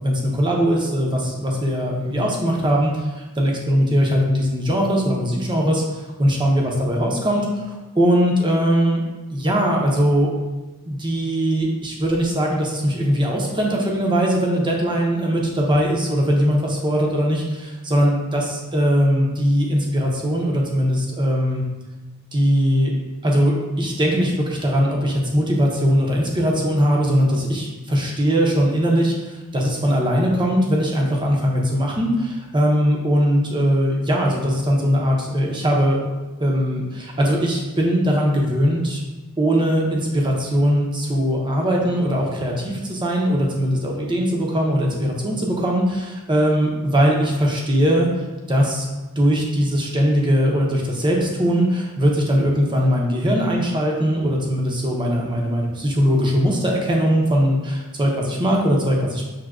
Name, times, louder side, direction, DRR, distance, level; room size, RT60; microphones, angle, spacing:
voice 1, 0.0-3.1 3.4-5.8 6.2-9.0 9.3-10.3 10.9-21.6 22.3-22.9 23.2-36.0 36.4-39.0 39.4-48.1 48.5-48.9 49.2-59.2, equal, 20° right, -1 dB, 0.6 m, -20 dB
6.1 x 2.7 x 2.4 m, 1.2 s
head